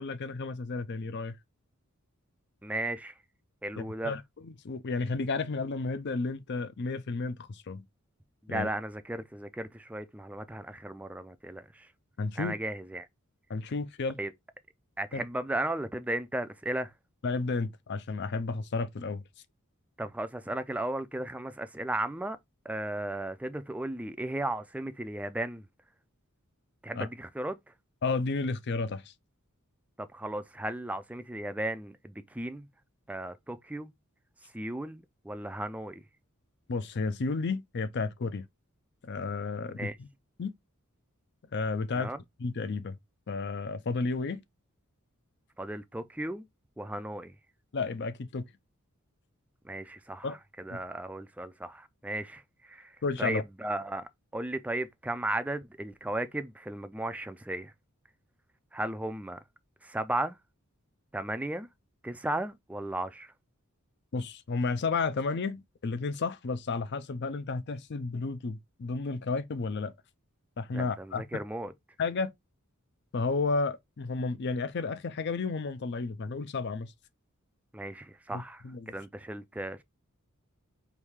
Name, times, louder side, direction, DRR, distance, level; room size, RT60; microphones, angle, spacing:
voice 1, 0.0-1.4 3.8-7.8 8.5-8.7 12.2-12.6 13.5-14.2 15.1-15.2 17.2-19.2 27.0-27.1 28.0-29.1 36.7-38.5 39.0-40.1 40.4-40.5 41.5-42.1 42.4-43.0 43.3-44.4 47.7-48.5 50.2-50.4 50.7-50.8 53.0-53.4 64.1-69.9 70.6-71.4 72.0-72.3 73.1-76.9 78.3-78.9, left 4 dB, 50° left, 0.5 m, -32 dB
voice 2, 2.6-3.1 3.6-4.1 8.5-11.9 12.4-13.1 14.2-14.3 15.0-16.9 20.0-22.4 22.7-25.7 26.8-27.6 30.0-32.7 33.1-33.9 34.5-36.0 39.8-40.0 41.9-42.2 45.6-46.5 46.8-47.3 49.6-57.7 58.7-59.4 59.8-60.4 61.1-61.7 62.0-63.3 70.7-71.7 77.7-79.8, right 1 dB, 5° right, 0.4 m, -35 dB
4.7 x 2.7 x 3.5 m
head